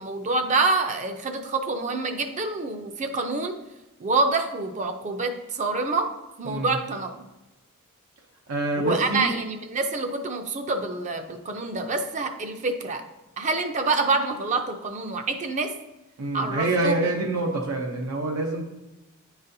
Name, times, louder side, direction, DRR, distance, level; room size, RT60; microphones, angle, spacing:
voice 1, 0.0-3.6 4.0-6.1 6.4-7.1 8.8-13.0 13.4-15.7 16.3-17.0, right 3 dB, 35° right, 6 dB, 0.5 m, -26 dB
voice 2, 6.4-6.8 8.5-9.4 16.2-18.6, right 2 dB, 85° right, 0 dB, 0.6 m, -26 dB
9.5 x 4.0 x 2.6 m, 1.0 s
head